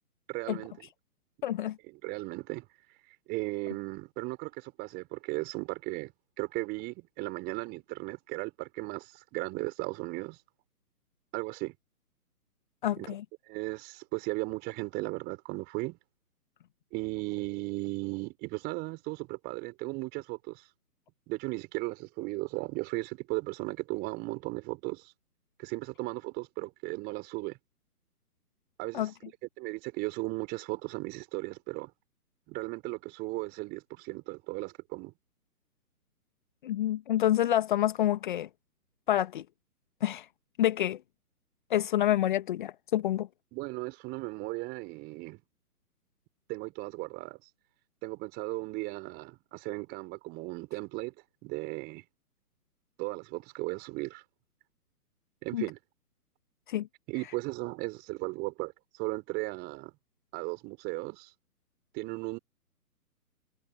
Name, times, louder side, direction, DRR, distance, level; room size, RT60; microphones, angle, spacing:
voice 1, 0.3-0.9 2.0-2.7 3.1-6.1 6.4-10.4 11.3-11.7 13.0-13.1 13.5-16.0 16.9-20.6 21.3-25.1 25.6-27.6 28.8-29.1 29.6-31.9 32.5-35.1 43.5-45.4 46.5-47.4 48.0-51.1 51.4-52.0 53.0-54.2 55.4-55.8 57.1-59.9 60.3-61.3 61.9-62.4, right 24 dB, 20° right, 4.1 m, -36 dB
voice 2, 1.4-1.8 12.8-13.2 28.9-29.1 36.6-38.5 39.1-39.4 40.0-40.3 40.6-41.0 41.7-43.3 55.5-55.6 56.7-56.9, left 12 dB, 30° left, 1.3 m, -27 dB
figure-of-eight pair, 140°, 47 cm